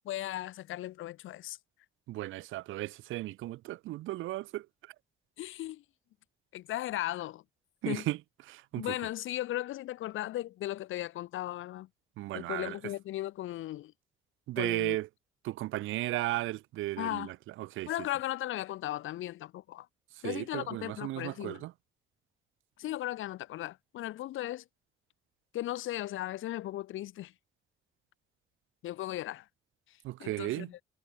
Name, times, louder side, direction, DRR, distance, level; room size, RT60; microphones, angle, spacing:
voice 1, 0.0-1.6 5.4-5.8 6.5-7.4 7.9-8.1 8.8-11.9 12.3-13.9 14.6-15.0 17.0-17.3 17.9-19.9 20.2-21.6 22.8-24.6 25.5-27.3 28.8-29.5 29.9-30.8, left 14 dB, 85° left, 2.4 m, -37 dB
voice 2, 2.1-4.7 7.8-8.2 8.5-9.0 12.2-12.8 14.5-15.1 15.4-17.9 20.2-21.7 30.0-30.7, right 16 dB, 85° right, 0.9 m, -35 dB
cardioid pair, 90°, 20 cm